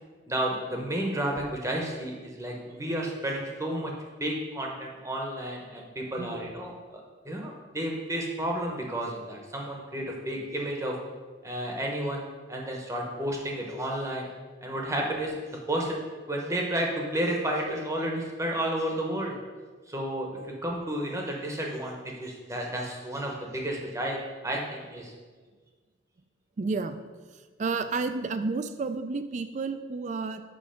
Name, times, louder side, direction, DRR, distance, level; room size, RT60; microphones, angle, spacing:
voice 1, 0.3-3.9 4.2-7.0 7.2-11.0 11.4-12.2 12.5-14.3 14.6-16.0 16.3-19.4 19.9-24.2 24.4-25.1, right 1 dB, 15° right, 0 dB, 0.8 m, -31 dB
voice 2, 6.2-6.5 26.6-27.0 27.3-30.4, right 4 dB, 35° right, 10 dB, 0.3 m, -31 dB
5.3 x 4.7 x 5.7 m, 1.4 s
head